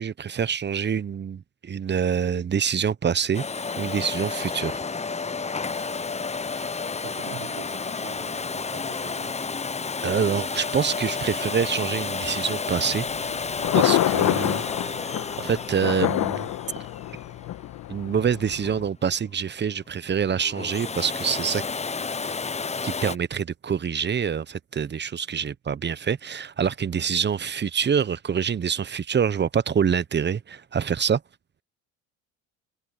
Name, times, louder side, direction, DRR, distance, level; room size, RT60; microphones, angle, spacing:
voice 1, 0.0-3.4 3.8-4.8 6.6-6.7 10.0-13.1 13.7-14.6 15.4-16.5 17.9-21.6 22.8-31.2, right 7 dB, 30° right, 1.1 m, -26 dB
Domestic sounds home sounds, 3.3-18.1 20.4-23.2, left 4 dB, 20° left, 1.0 m, -31 dB
voice 2, 5.5-6.1 6.7-9.4 13.8-14.0 25.3-25.5, right 14 dB, 60° right, 6.5 m, -45 dB
Thunder, 12.9-18.9, left 14 dB, 55° left, 1.6 m, -27 dB
hypercardioid pair, 75°, 37 cm